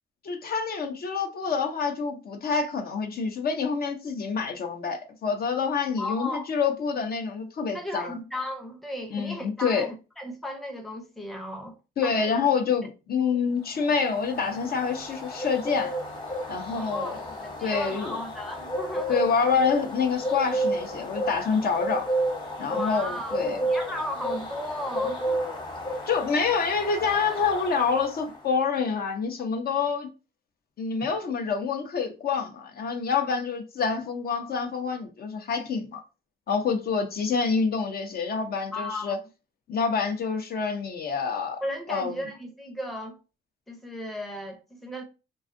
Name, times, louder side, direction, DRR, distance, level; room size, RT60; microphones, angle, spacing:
voice 1, 0.2-8.2 9.1-9.9 12.0-15.9 16.5-17.2 17.6-18.2 19.1-22.1 22.6-23.6 26.1-30.1 30.8-36.0 36.5-39.2 39.7-41.6 41.9-42.2, left 5 dB, 50° left, 0.5 m, -27 dB
voice 2, 6.0-6.5 7.7-11.8 12.0-12.3 13.2-13.4 16.7-19.3 22.6-25.6 38.7-39.2 41.6-43.2 43.7-45.0, left 1 dB, ahead, 0.6 m, -35 dB
sound 1, 13.8-28.4, right 1 dB, 25° left, 0.9 m, -32 dB
2.5 x 2.3 x 2.5 m
cardioid pair, 90°, 20 cm